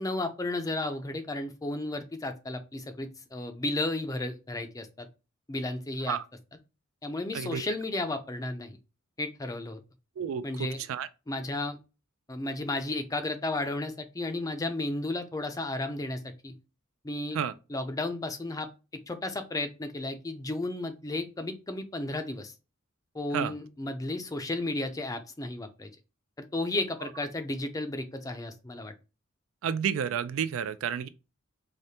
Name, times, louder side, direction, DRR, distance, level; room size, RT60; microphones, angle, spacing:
voice 1, 0.0-5.1 5.5-6.2 7.0-8.8 9.2-9.8 10.4-10.8 11.3-11.8 12.3-16.5 17.0-17.4 17.7-18.7 19.1-22.5 23.1-25.9 26.4-28.9, left 2 dB, 15° left, 0.4 m, -33 dB
voice 2, 10.2-11.1 17.3-17.5 23.3-23.5 29.6-31.1, right 8 dB, 70° right, 0.3 m, -31 dB
4.9 x 2.1 x 2.8 m
head